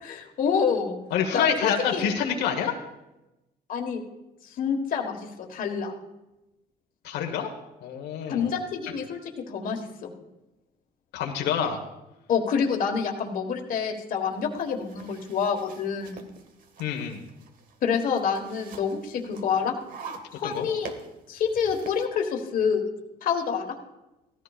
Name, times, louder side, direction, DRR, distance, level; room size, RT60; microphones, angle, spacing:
voice 1, 0.0-0.9 1.3-2.1 3.7-4.0 4.4-5.9 8.3-10.1 12.3-16.3 17.8-19.7 20.4-20.9 21.3-22.8 23.2-23.7, left 6 dB, 55° left, 3 dB, 1.5 m, -27 dB
voice 2, 1.1-2.7 7.0-7.5 7.8-8.5 11.1-11.8 16.8-17.2 20.4-20.6, left 7 dB, 90° left, 2 dB, 1.3 m, -27 dB
sound 1, 14.3-22.1, right 5 dB, 55° right, 1.2 m, -46 dB
17.0 x 14.0 x 2.5 m, 0.97 s
cardioid pair, 110°, 17 cm